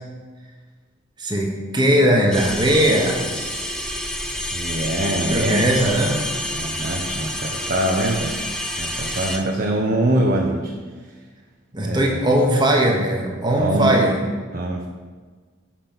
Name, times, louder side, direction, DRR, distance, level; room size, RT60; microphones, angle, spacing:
voice 1, 1.2-3.9 5.2-6.2 11.7-14.2, right 1 dB, 20° right, 0 dB, 1.1 m, -19 dB
sound 1, 2.3-9.4, left 1 dB, 5° left, 0.5 m, -28 dB
voice 2, 4.5-5.7 6.5-8.4 8.8-10.7 11.8-12.2 13.6-14.0 14.5-14.9, right 1 dB, 45° right, -1 dB, 0.7 m, -23 dB
5.9 x 5.9 x 7.0 m, 1.4 s
head